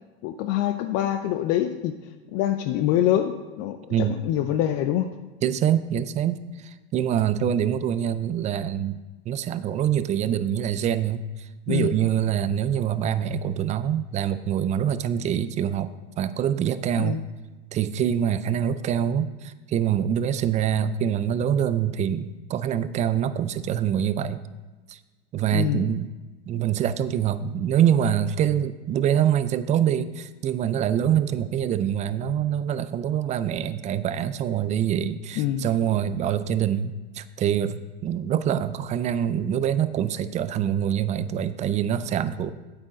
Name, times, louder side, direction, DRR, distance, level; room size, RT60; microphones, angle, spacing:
voice 1, 0.2-1.9 2.3-5.1 11.7-11.9 17.0-17.2 25.5-25.8 35.4-35.7, left 12 dB, 50° left, 9 dB, 0.6 m, -25 dB
voice 2, 5.4-9.0 9.3-11.2 11.7-15.9 16.2-17.2 17.7-24.4 24.9-25.0 25.3-26.1 26.5-42.5, right 9 dB, 25° right, 14 dB, 0.3 m, -25 dB
8.9 x 8.6 x 3.8 m, 1.2 s
hypercardioid pair, 100°, 33 cm